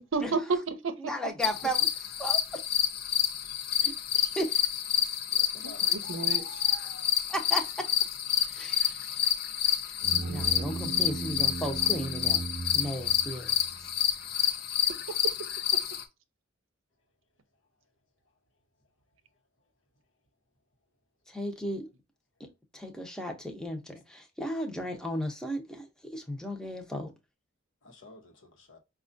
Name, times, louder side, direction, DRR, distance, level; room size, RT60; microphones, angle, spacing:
voice 1, 0.0-1.3 5.6-6.6 15.1-15.8, right 4 dB, 80° right, 0.6 m, -33 dB
voice 2, 1.0-1.9 2.2-2.4 3.8-3.9 4.4-4.6 7.3-7.7 8.5-9.3 10.3-12.4 12.7-13.9 21.3-21.9 22.4-22.5 22.7-25.9 26.1-27.1, equal, 5° left, 0.7 m, -35 dB
sound 1, 1.4-16.0, left 10 dB, 50° left, 0.6 m, -28 dB
voice 3, 5.3-6.3 27.8-28.8, left 2 dB, 70° left, 1.0 m, -52 dB
sound 2, 10.0-13.7, right 3 dB, 45° right, 0.8 m, -36 dB
5.3 x 2.4 x 2.5 m
head